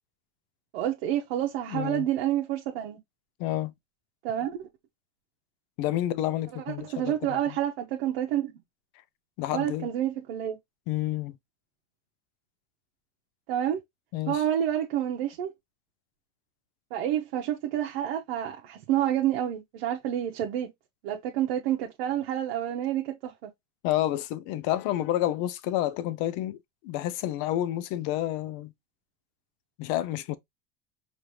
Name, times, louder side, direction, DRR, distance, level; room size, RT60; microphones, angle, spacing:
voice 1, 0.7-3.0 4.2-4.7 6.5-8.5 9.5-10.6 13.5-13.8 14.3-15.5 16.9-20.7 21.0-23.3, right 11 dB, 75° right, 0.8 m, -29 dB
voice 2, 1.7-2.1 3.4-3.7 5.8-7.2 9.4-9.9 10.9-11.4 14.1-14.4 23.8-26.6 26.8-28.7 29.8-30.4, left 13 dB, 60° left, 0.6 m, -29 dB
5.1 x 2.6 x 3.0 m
supercardioid pair, 130°, 30 cm